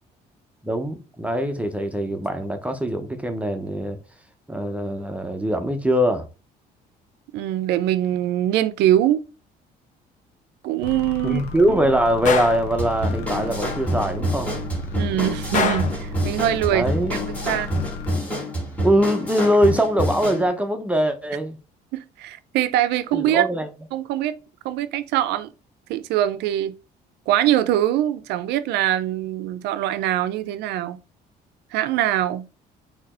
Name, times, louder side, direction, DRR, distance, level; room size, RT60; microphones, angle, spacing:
voice 1, 0.6-4.0 4.5-6.3 11.2-14.5 16.7-17.2 18.8-21.6 23.1-23.7, equal, 10° right, 0.6 m, -22 dB
voice 2, 7.3-9.2 10.6-11.4 14.9-16.9 17.4-17.7 22.2-23.5 23.9-24.3 24.6-25.5 25.9-26.7 27.3-31.0 31.7-32.5, right 12 dB, 85° right, 0.5 m, -22 dB
sound 1, 10.8-18.1, left 1 dB, 85° left, 0.9 m, -35 dB
Gunshot gunfire, 12.3-12.7 15.5-16.0, left 6 dB, 50° left, 0.7 m, -24 dB
sound 2, 12.8-20.5, equal, 10° left, 1.8 m, -27 dB
4.2 x 2.9 x 4.2 m
cardioid pair, 110°, 17 cm